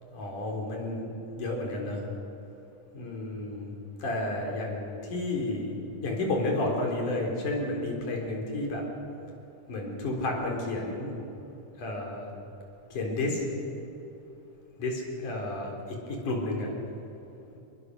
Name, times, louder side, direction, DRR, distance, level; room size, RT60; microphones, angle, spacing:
voice 1, 0.1-2.0 2.9-3.7 4.0-8.8 9.7-11.1 11.8-12.3 12.9-13.4 14.8-16.7, left 2 dB, 70° left, 0 dB, 5.2 m, -31 dB
27.5 x 21.5 x 6.5 m, 2.9 s
omnidirectional pair, 3.7 m